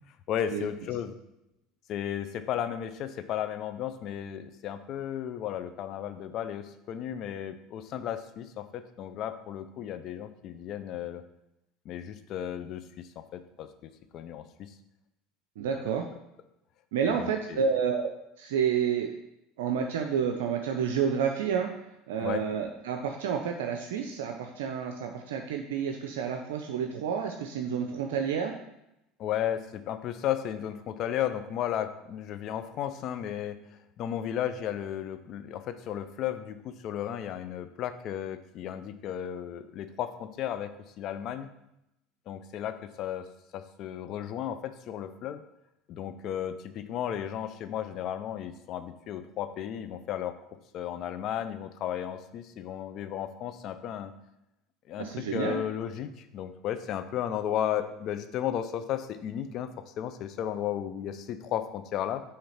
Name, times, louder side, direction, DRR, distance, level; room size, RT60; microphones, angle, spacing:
voice 1, 0.3-1.2 1.9-11.2 11.8-14.7 15.7-16.0 17.0-17.7 22.2-22.4 29.2-41.5 42.3-43.3 43.5-45.4 45.9-50.3 50.7-54.1 54.9-62.2, left 10 dB, 55° left, 10 dB, 0.5 m, -34 dB
voice 2, 15.6-16.1 16.9-18.1 18.4-19.1 19.6-21.7 22.1-28.5 55.0-55.6, right 7 dB, 80° right, 4 dB, 0.5 m, -29 dB
5.6 x 3.3 x 5.6 m, 0.86 s
hypercardioid pair, 85°, 0 cm